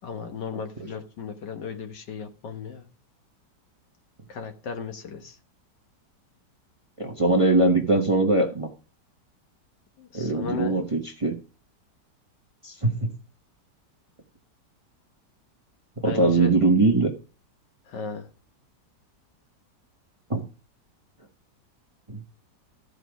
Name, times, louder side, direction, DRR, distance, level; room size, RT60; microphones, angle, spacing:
voice 1, 0.0-2.9 4.3-5.4 10.0-10.8 16.1-16.5 17.9-18.3, left 6 dB, 75° left, 1.9 m, -35 dB
voice 2, 7.0-8.7 10.1-11.3 12.6-13.1 16.0-17.1 20.3-20.4 22.1-22.2, right 2 dB, 25° right, 0.9 m, -21 dB
14.0 x 5.1 x 4.7 m
omnidirectional pair, 1.9 m